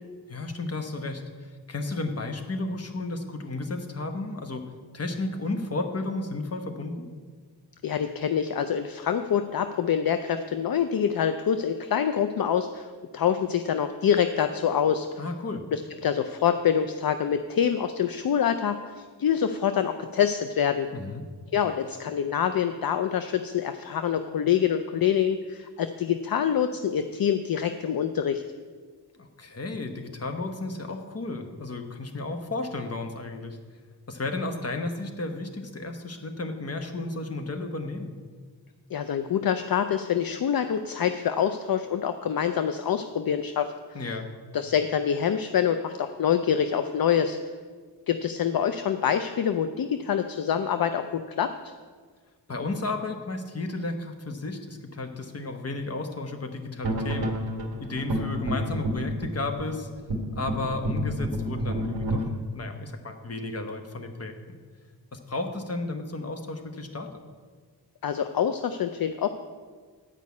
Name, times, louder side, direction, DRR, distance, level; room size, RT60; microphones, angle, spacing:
voice 1, 0.3-7.1 15.2-15.6 20.9-21.2 29.2-33.6 34.1-38.1 43.9-44.3 52.5-57.3 57.8-59.9 60.4-62.3 62.5-64.6 65.1-67.1, left 2 dB, 35° left, 5 dB, 1.1 m, -33 dB
voice 2, 7.8-15.1 15.7-20.9 21.5-28.4 38.9-43.7 44.5-47.4 48.1-51.5 68.0-69.3, left 8 dB, 60° left, 9 dB, 0.5 m, -26 dB
sound 1, 56.8-62.3, equal, 60° right, 1.5 m, -29 dB
10.5 x 5.4 x 8.3 m, 1.5 s
wide cardioid pair, 110°, 40 cm